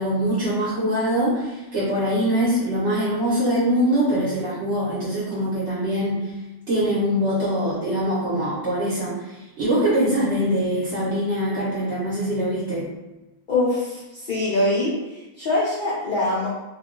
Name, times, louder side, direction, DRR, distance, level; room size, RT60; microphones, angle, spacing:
voice 1, 0.0-6.2 6.7-9.3 9.6-12.9, equal, 50° right, -8 dB, 1.0 m, -23 dB
voice 2, 13.5-16.5, left 2 dB, 65° left, -8 dB, 0.5 m, -23 dB
2.7 x 2.3 x 3.6 m, 1.0 s
omnidirectional pair, 1.6 m